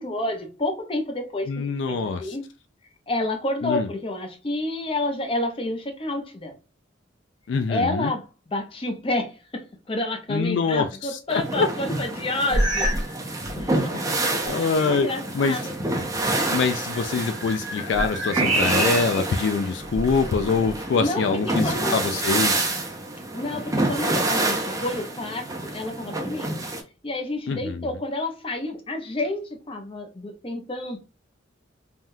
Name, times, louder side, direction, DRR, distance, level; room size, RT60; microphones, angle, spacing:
voice 1, 0.0-2.4 3.1-6.5 7.7-12.9 13.6-13.9 14.8-15.8 21.0-22.0 23.3-26.6 27.0-31.0, left 2 dB, 30° left, 0.6 m, -29 dB
voice 2, 1.5-2.4 3.6-3.9 7.5-8.1 10.3-11.7 14.5-15.1 15.3-15.6 16.5-22.7 27.5-27.9, left 4 dB, 65° left, 0.3 m, -24 dB
sound 1, 11.3-26.8, right 2 dB, 15° right, 0.5 m, -28 dB
sound 2, 12.5-13.1 13.4-13.8 14.4-14.5 16.9-19.3 19.8-20.8, right 1 dB, 40° right, 0.8 m, -27 dB
3.5 x 2.2 x 2.6 m
head